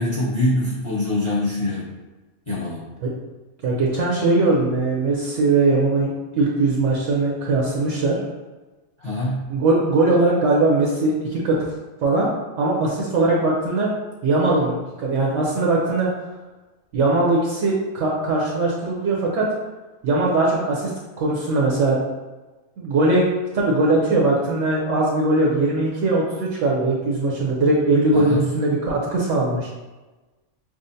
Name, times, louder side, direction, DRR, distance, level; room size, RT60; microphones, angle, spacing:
voice 1, 0.0-1.9 2.5-2.9 9.0-9.5 28.1-28.5, left 1 dB, 25° left, -7 dB, 0.9 m, -24 dB
voice 2, 3.6-8.2 9.5-11.6 12.0-12.3 12.6-13.9 14.2-16.1 16.9-19.5 20.0-20.9 21.2-22.0 22.8-23.3 23.5-29.7, right 2 dB, 70° right, -3 dB, 1.0 m, -20 dB
6.2 x 2.1 x 2.6 m, 1.2 s
omnidirectional pair, 1.4 m